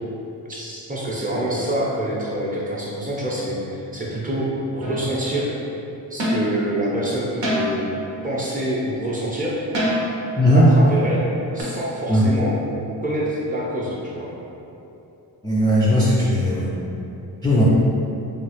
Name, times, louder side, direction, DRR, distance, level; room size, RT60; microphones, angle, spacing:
voice 1, 0.5-4.5 4.7-5.5 6.1-7.9 8.2-9.5 10.5-11.3 11.5-12.5 13.0-14.3, right 1 dB, 20° right, -7 dB, 0.7 m, -26 dB
sound 1, 4.8-5.2 6.2-6.6 7.4-7.9 9.7-10.3 11.6-11.7, equal, 70° right, 0.9 m, -24 dB
voice 2, 10.4-10.7 12.1-12.3 15.4-16.7 17.4-17.6, equal, 10° left, -7 dB, 0.4 m, -17 dB
2.9 x 2.4 x 3.1 m, 2.8 s
cardioid pair, 75°, 45 cm